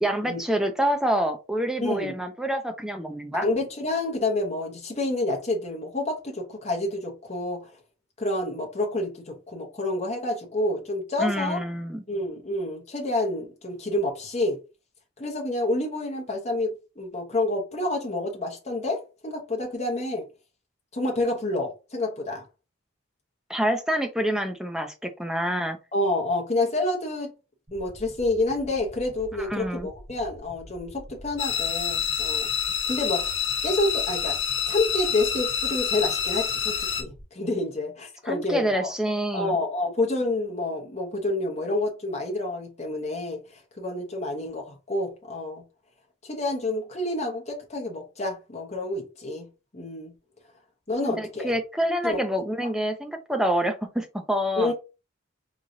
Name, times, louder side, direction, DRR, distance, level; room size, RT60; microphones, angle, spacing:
voice 1, 0.0-3.5 11.2-12.0 23.5-25.8 29.5-29.9 38.3-39.6 51.0-54.7, equal, ahead, 0.4 m, -27 dB
voice 2, 1.8-2.1 3.4-7.7 8.2-11.6 12.1-14.6 15.2-20.2 20.9-22.4 25.9-27.3 27.7-32.5 32.9-34.4 34.7-38.9 39.3-45.6 46.2-49.5 49.7-50.1 50.9-51.5 52.0-52.2 54.6-54.7, left 2 dB, 30° left, 0.9 m, -28 dB
sound 1, 27.7-37.2, equal, 35° right, 1.4 m, -47 dB
sound 2, 31.4-37.0, left 7 dB, 65° left, 0.8 m, -27 dB
3.7 x 3.1 x 2.6 m
head